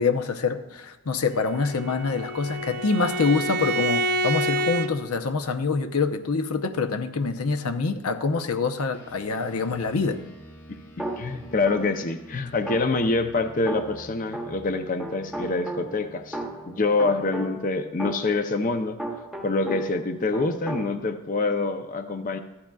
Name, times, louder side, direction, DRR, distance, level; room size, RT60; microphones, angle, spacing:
voice 1, 0.0-10.2, left 4 dB, 90° left, 0.7 m, -25 dB
Bowed string instrument, 1.4-4.9, right 1 dB, 45° right, 0.5 m, -28 dB
sound 1, 8.9-18.7, right 1 dB, 70° left, 2.5 m, -48 dB
sound 2, 11.0-12.1 12.7-20.1 20.3-20.9, right 1 dB, ahead, 0.9 m, -36 dB
voice 2, 11.2-16.4 16.7-19.0 19.4-22.4, left 3 dB, 40° left, 0.5 m, -26 dB
14.5 x 11.5 x 2.3 m
head